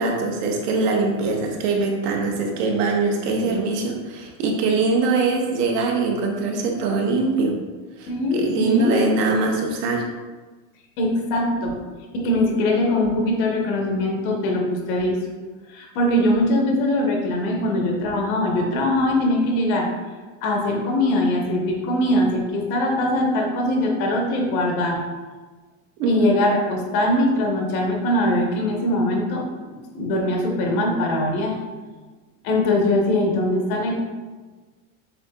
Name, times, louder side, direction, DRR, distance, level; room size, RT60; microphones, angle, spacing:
voice 1, 0.0-7.5 8.0-10.0 26.0-26.2, right 3 dB, 85° right, 1 dB, 1.0 m, -22 dB
voice 2, 8.1-9.0 11.0-11.8 12.1-15.2 15.7-19.9 20.4-25.0 26.1-31.6 32.4-34.0, left 1 dB, 65° left, 0 dB, 1.2 m, -22 dB
7.1 x 2.8 x 2.3 m, 1.3 s
cardioid pair, 170°, 45 cm